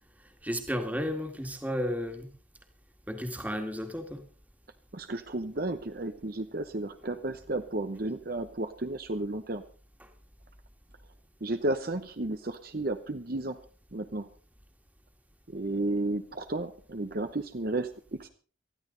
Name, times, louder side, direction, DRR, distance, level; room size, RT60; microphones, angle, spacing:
voice 1, 0.4-2.3 3.1-4.2 10.0-10.1, equal, 10° right, 2.0 m, -33 dB
voice 2, 4.9-9.6 11.4-13.6 13.9-14.3 15.5-18.3, right 2 dB, 45° right, 0.9 m, -33 dB
19.0 x 14.0 x 3.9 m
head